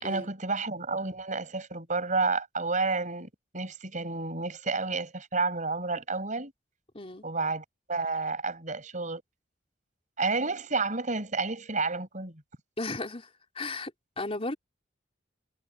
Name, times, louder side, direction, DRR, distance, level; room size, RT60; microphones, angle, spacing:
voice 1, 0.0-6.5 7.2-9.2 10.2-12.4, right 3 dB, 40° right, 5.4 m, -30 dB
voice 2, 12.8-13.9 14.2-14.6, left 2 dB, 30° left, 3.6 m, -35 dB
head